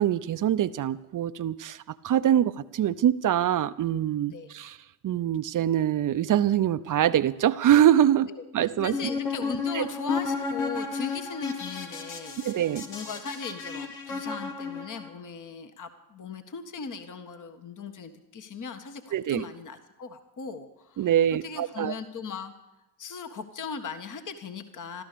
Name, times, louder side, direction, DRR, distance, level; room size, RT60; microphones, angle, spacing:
voice 1, 0.0-4.8 5.0-8.3 8.5-8.9 9.7-9.8 12.4-12.8 19.1-19.5 21.0-21.9, right 11 dB, 45° right, 14 dB, 0.7 m, -24 dB
voice 2, 8.3-21.1 21.4-22.5 23.0-25.0, left 5 dB, 40° left, 8 dB, 1.6 m, -38 dB
sound 1, 8.8-15.1, left 4 dB, 90° left, 1.6 m, -33 dB
15.5 x 13.0 x 6.9 m, 1.0 s
hypercardioid pair, 55°, 45 cm